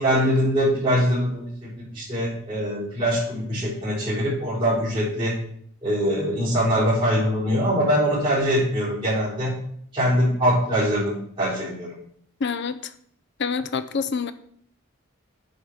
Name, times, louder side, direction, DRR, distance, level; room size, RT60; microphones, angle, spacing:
voice 1, 0.0-5.3 5.8-9.5 9.9-11.9, equal, 25° right, -12 dB, 3.9 m, -23 dB
voice 2, 12.4-12.8 13.4-14.3, left 5 dB, 55° left, 11 dB, 0.6 m, -26 dB
8.2 x 4.6 x 5.7 m, 0.63 s
head